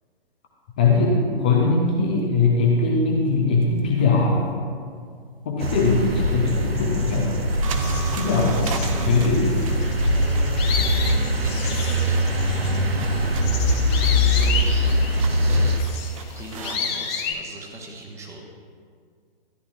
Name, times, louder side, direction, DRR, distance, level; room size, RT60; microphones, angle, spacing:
voice 1, 0.8-4.6 5.5-7.6 8.1-9.7 13.3-13.5 14.0-14.1, left 3 dB, 10° left, -2 dB, 0.3 m, -21 dB
sound 1, 3.5-4.9 6.1-16.8, right 6 dB, 35° right, 0.6 m, -40 dB
sound 2, 5.6-15.8, equal, 80° right, 1.0 m, -22 dB
sound 3, 7.6-17.3, left 6 dB, 25° left, 1.0 m, -33 dB
voice 2, 10.8-12.7 13.5-15.0 15.5-15.8 16.3-18.4, right 1 dB, 10° right, 1 dB, 0.9 m, -40 dB
13.0 x 10.5 x 2.3 m, 2.1 s
figure-of-eight pair, 125°, 30 cm